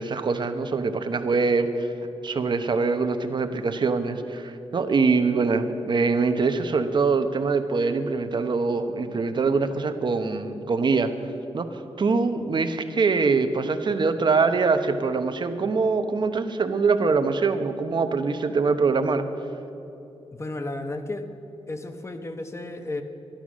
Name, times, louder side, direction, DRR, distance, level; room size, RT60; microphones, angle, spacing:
voice 1, 0.0-1.9 2.2-11.1 11.5-11.7 12.0-19.2, right 4 dB, 50° right, 8 dB, 0.9 m, -23 dB
voice 2, 20.3-21.3 21.7-23.0, left 2 dB, 25° left, 7 dB, 1.0 m, -33 dB
12.0 x 11.5 x 6.2 m, 2.9 s
wide cardioid pair, 115°, 10 cm